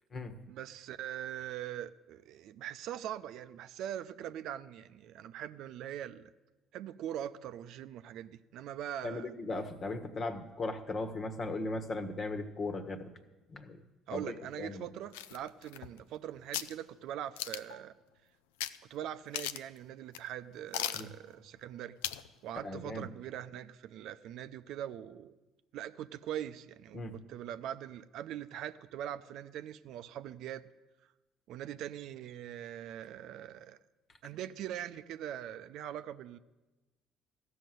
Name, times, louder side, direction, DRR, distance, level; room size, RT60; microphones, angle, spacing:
voice 1, 0.5-6.3 6.7-9.3 14.1-17.9 18.9-22.0 22.4-25.3 25.7-30.7 31.5-33.8 34.2-36.4, right 11 dB, 65° right, 11 dB, 0.5 m, -42 dB
voice 2, 9.0-13.0 13.5-13.8 14.1-14.9 20.9-21.1 22.6-23.1 26.9-27.2, left 2 dB, 45° left, 7 dB, 1.5 m, -37 dB
sound 1, 15.1-16.1 16.5-16.7 17.4-17.8 18.6-18.8 19.0-19.1 19.3-19.8 20.1-20.2 20.7-21.1 22.0-22.3 22.7-22.8, left 12 dB, 80° left, 0.4 m, -37 dB
15.0 x 6.4 x 9.2 m, 1.1 s
hypercardioid pair, 55°, 0 cm